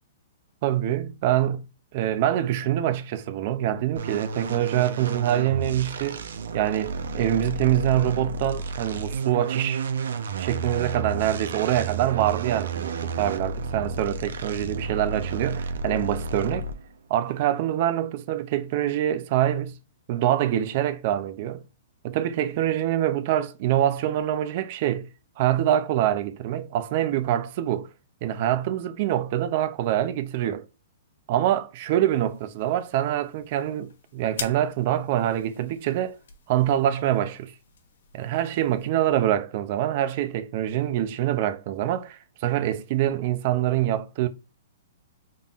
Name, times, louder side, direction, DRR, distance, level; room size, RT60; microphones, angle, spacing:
voice 1, 0.6-1.6 1.9-6.2 6.5-9.8 10.4-16.7 17.1-19.8 20.1-21.6 22.0-25.1 25.4-27.9 28.2-30.6 31.3-36.2 36.5-37.5 38.1-44.3, right 12 dB, 40° right, 0.5 m, -25 dB
sound 1, 4.0-16.9, right 4 dB, 80° right, 0.7 m, -31 dB
sound 2, 32.1-38.9, left 6 dB, 75° left, 1.0 m, -44 dB
5.5 x 3.8 x 2.5 m
hypercardioid pair, 165°, 0 cm